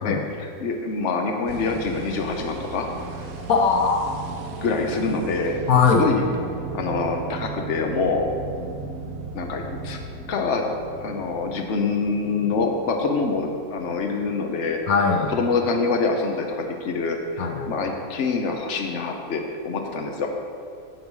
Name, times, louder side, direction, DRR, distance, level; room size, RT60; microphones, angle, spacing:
voice 1, 0.0-2.9 4.6-5.6 5.9-6.2 6.7-8.2 9.3-10.0 10.3-10.6 11.0-14.8 15.3-20.3, left 4 dB, 60° left, 2 dB, 1.2 m, -25 dB
sound 1, 1.5-14.9, right 3 dB, 90° right, 1.3 m, -36 dB
voice 2, 3.5-4.0 5.7-6.0 14.9-15.3 17.4-17.7, left 5 dB, 90° left, 3 dB, 1.4 m, -20 dB
10.0 x 7.0 x 4.8 m, 2.3 s
omnidirectional pair, 1.5 m